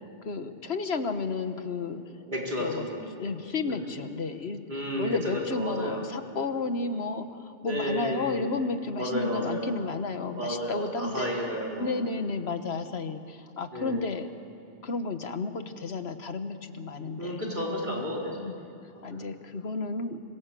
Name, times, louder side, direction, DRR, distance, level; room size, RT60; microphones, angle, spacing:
voice 1, 0.2-2.0 2.6-2.9 3.2-4.6 5.0-11.3 11.8-14.3 14.8-17.5 18.4-18.7 19.0-20.2, left 3 dB, 70° left, 8 dB, 1.6 m, -32 dB
voice 2, 2.2-3.3 3.6-3.9 4.7-6.1 7.6-8.5 9.0-9.7 10.3-11.9 13.7-14.0 17.2-18.5 18.9-19.3, equal, 45° right, -2 dB, 4.6 m, -32 dB
26.5 x 25.0 x 7.7 m, 2.6 s
omnidirectional pair, 1.1 m